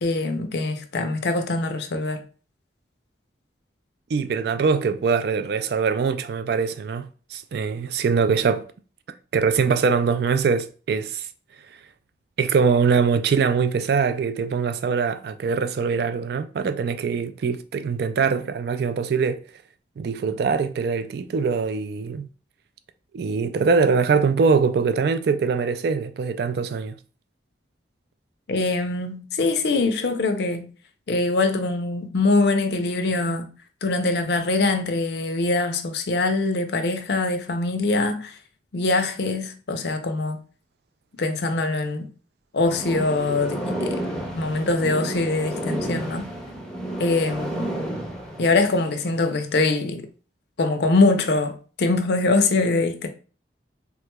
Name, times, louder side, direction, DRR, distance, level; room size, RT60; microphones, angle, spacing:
voice 1, 0.0-2.2 28.5-30.7 31.1-33.5 33.8-38.4 38.7-40.4 41.2-42.1 42.5-44.0 44.3-46.3 47.0-47.8 48.4-50.1 50.6-53.1, left 3 dB, 65° left, 0.5 m, -23 dB
voice 2, 4.1-8.7 9.3-11.3 12.4-19.4 20.0-22.3 23.1-27.0, right 5 dB, 60° right, 0.3 m, -23 dB
Air portal, 42.7-49.1, right 1 dB, 5° left, 0.6 m, -31 dB
3.6 x 3.0 x 2.2 m
head